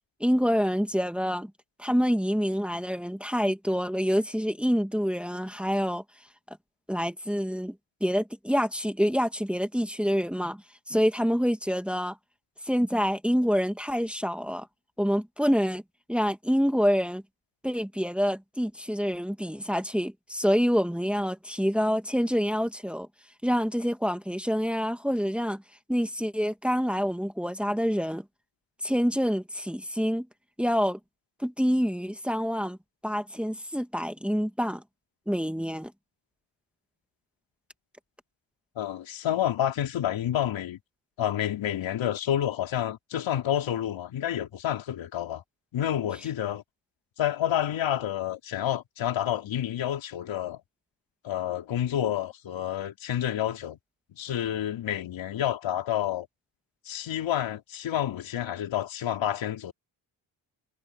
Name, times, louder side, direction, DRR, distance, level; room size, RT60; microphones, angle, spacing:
voice 1, 0.2-1.5 1.8-6.0 6.5-6.6 6.9-12.2 12.6-14.7 15.0-15.8 16.1-17.2 17.6-23.1 23.4-25.6 25.9-28.2 28.8-30.3 30.6-31.0 31.4-32.8 33.0-34.8 35.3-35.9, equal, ahead, 1.9 m, -27 dB
voice 2, 38.7-40.8 41.2-45.4 45.7-46.6 47.2-50.6 51.2-53.8 54.1-56.3 56.8-59.7, left 11 dB, 80° left, 3.3 m, -29 dB
cardioid pair, 90°, 46 cm